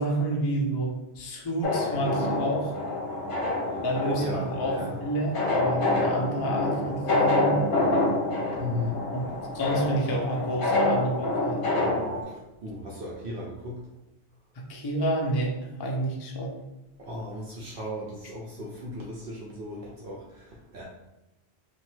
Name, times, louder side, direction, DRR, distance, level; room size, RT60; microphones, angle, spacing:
voice 1, 0.0-2.7 3.8-4.7 5.0-7.6 9.1-9.2 9.5-11.6 14.7-16.5, right 1 dB, 40° left, -1 dB, 0.3 m, -29 dB
sound 1, 1.6-12.2, left 2 dB, 60° left, 0.8 m, -27 dB
voice 2, 4.2-5.0 8.5-9.1 12.3-13.8 17.0-20.8, left 1 dB, 65° right, -3 dB, 0.7 m, -36 dB
3.0 x 2.2 x 3.1 m, 0.95 s
omnidirectional pair, 1.1 m